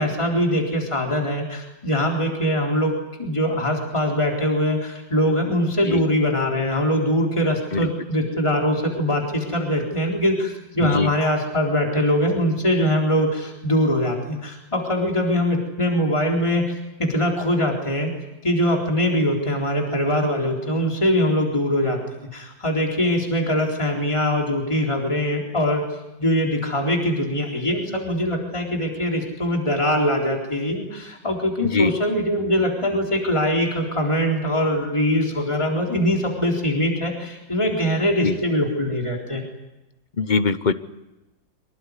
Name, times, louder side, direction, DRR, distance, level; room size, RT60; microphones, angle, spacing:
voice 1, 0.0-2.9 3.2-16.7 17.0-18.1 18.4-22.0 22.3-25.8 26.2-39.4, equal, 15° left, 1 dB, 4.0 m, -22 dB
voice 2, 40.2-40.7, left 4 dB, 40° left, 12 dB, 0.7 m, -22 dB
25.5 x 19.0 x 9.7 m, 1.0 s
omnidirectional pair, 2.0 m